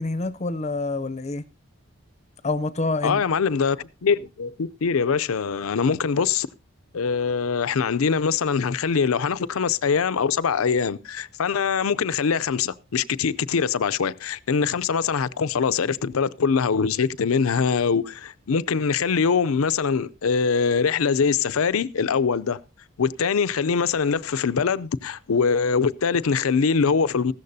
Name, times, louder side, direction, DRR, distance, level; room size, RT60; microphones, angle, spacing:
voice 1, 0.0-1.4 2.4-3.2, left 2 dB, 30° left, 0.6 m, -27 dB
voice 2, 3.0-6.5 6.9-22.6 23.0-27.3, left 5 dB, 85° left, 0.5 m, -23 dB
15.5 x 13.5 x 2.7 m
head